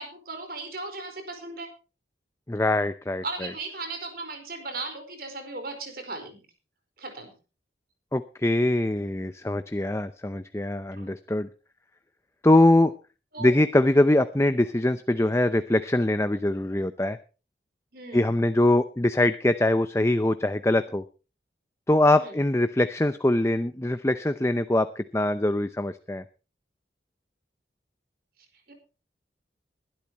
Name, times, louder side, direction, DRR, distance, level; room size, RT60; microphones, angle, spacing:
voice 1, 0.0-1.7 3.2-6.4 7.0-7.3 11.0-11.1 13.3-13.5 17.9-18.4 22.2-22.4 28.7-28.8, right 3 dB, 55° right, 6 dB, 4.7 m, -37 dB
voice 2, 2.5-3.5 8.1-11.5 12.4-12.9 13.4-17.2 18.1-21.0 21.9-26.2, left 1 dB, 15° left, 11 dB, 0.6 m, -23 dB
22.0 x 12.0 x 3.0 m, 0.33 s
head